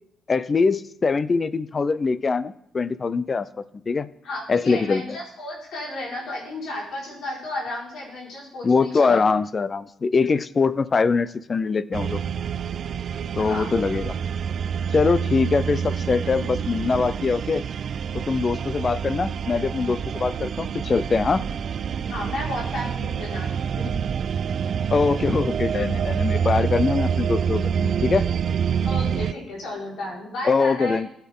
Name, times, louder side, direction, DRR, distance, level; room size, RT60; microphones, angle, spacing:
voice 1, 0.3-4.1 4.5-5.2 8.6-12.2 13.4-14.1 14.9-17.6 18.1-21.4 24.9-28.3 30.4-31.1, left 4 dB, 35° left, 16 dB, 0.5 m, -23 dB
voice 2, 4.2-9.2 13.4-13.7 22.1-24.0 28.8-31.0, left 1 dB, 70° left, -4 dB, 4.8 m, -33 dB
sound 1, 11.9-29.3, right 7 dB, 55° right, 0.4 m, -27 dB
15.5 x 8.1 x 3.7 m, 0.76 s
cardioid pair, 90°, 0 cm